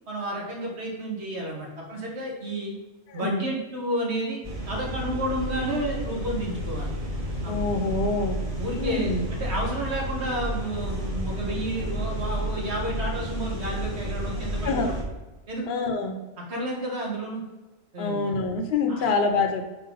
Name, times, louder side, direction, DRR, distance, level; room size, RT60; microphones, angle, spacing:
voice 1, 0.1-2.7 3.1-4.4 4.7-6.9 7.4-7.8 8.6-15.0 15.5-15.8 16.5-17.4 17.9-18.3 18.9-19.1, right 1 dB, 75° right, -1 dB, 1.6 m, -31 dB
voice 2, 3.1-3.4 7.5-8.4 8.8-9.3 14.4-14.9 15.7-16.2 18.0-19.7, left 3 dB, 75° left, 4 dB, 0.9 m, -26 dB
sound 1, 4.4-15.0, equal, 35° right, 1.2 m, -31 dB
4.4 x 4.1 x 5.3 m, 1.1 s
omnidirectional pair, 1.1 m